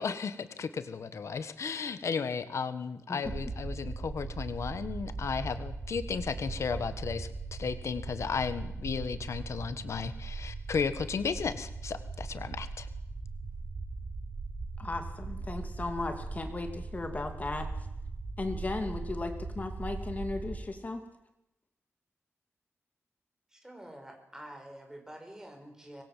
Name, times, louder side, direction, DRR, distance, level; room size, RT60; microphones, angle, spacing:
voice 1, 0.0-12.9, left 5 dB, 85° left, 11 dB, 1.5 m, -34 dB
sound 1, 3.2-20.6, right 3 dB, 90° right, 6.4 m, -39 dB
voice 2, 14.8-17.7 18.4-21.1, left 2 dB, 30° left, 6 dB, 2.6 m, -36 dB
voice 3, 23.5-26.0, right 1 dB, 10° right, 4 dB, 5.5 m, -47 dB
25.5 x 20.5 x 7.7 m, 0.88 s
wide cardioid pair, 125°, 5 cm